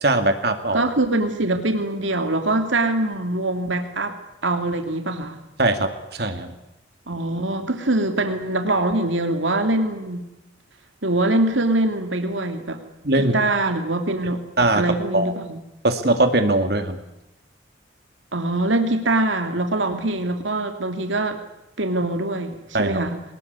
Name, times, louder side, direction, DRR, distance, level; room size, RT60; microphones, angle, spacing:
voice 1, 0.0-0.9 5.6-5.9 6.2-6.5 13.0-13.4 14.6-14.8 15.1-15.3 15.8-17.0 22.7-23.0, right 2 dB, 55° right, 7 dB, 2.3 m, -20 dB
voice 2, 0.7-4.2 4.4-5.4 7.1-10.2 11.0-12.8 13.1-14.4 14.7-15.6 18.3-21.4 21.8-23.2, right 2 dB, 85° right, 6 dB, 2.7 m, -23 dB
23.5 x 20.5 x 9.6 m, 0.90 s
head